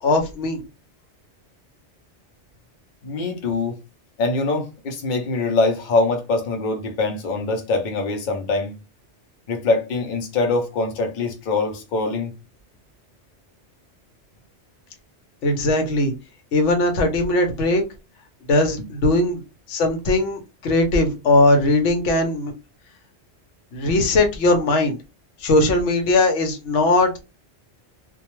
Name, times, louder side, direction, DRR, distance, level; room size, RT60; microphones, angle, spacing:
voice 1, 0.0-0.6 15.4-16.1 16.5-17.8 18.5-19.4 19.7-22.5 23.7-25.0 25.4-27.2, left 2 dB, 85° left, 1.0 m, -19 dB
voice 2, 3.0-3.8 4.2-8.7 9.5-12.3, left 3 dB, 50° left, 0.7 m, -23 dB
2.3 x 2.2 x 2.9 m
omnidirectional pair, 1.2 m